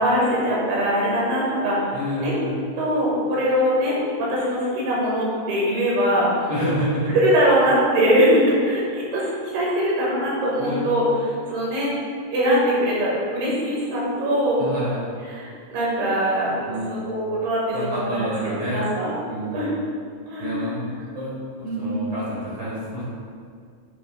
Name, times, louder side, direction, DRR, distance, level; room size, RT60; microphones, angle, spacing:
voice 1, 0.0-1.9 2.2-2.3 2.8-6.5 7.1-9.3 9.5-11.0 11.5-11.9 12.3-14.6 15.3-16.6 16.9-18.2 18.7-19.2 19.5-19.7 20.3-20.8 21.6-22.1, equal, 90° right, -6 dB, 3.9 m, -22 dB
voice 2, 1.9-2.6 6.5-7.2 10.6-11.0 14.6-15.1 16.6-17.0 17.7-18.9 19.3-19.7 20.4-21.3 21.6-23.0, equal, 50° right, -7 dB, 1.7 m, -28 dB
10.5 x 5.8 x 2.3 m, 2.1 s
omnidirectional pair, 4.3 m